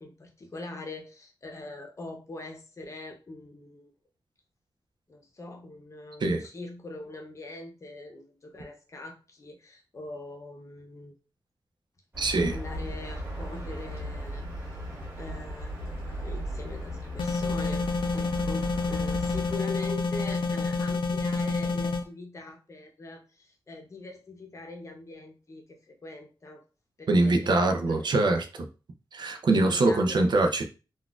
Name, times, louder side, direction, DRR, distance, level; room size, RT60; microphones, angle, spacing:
voice 1, 0.0-3.9 5.1-11.1 12.5-14.4 15.2-17.9 18.1-26.6 27.0-27.3 27.6-28.1 29.5-30.3, left 2 dB, 35° left, 3 dB, 0.7 m, -42 dB
sound 1, 12.1-19.5, equal, 25° right, 1.7 m, -36 dB
voice 2, 12.2-12.6 27.1-28.7 29.1-30.6, right 2 dB, 60° right, 5 dB, 0.5 m, -23 dB
sound 2, 17.2-22.0, left 4 dB, 75° left, 0.5 m, -28 dB
3.9 x 2.4 x 2.4 m, 0.34 s
wide cardioid pair, 135°, 9 cm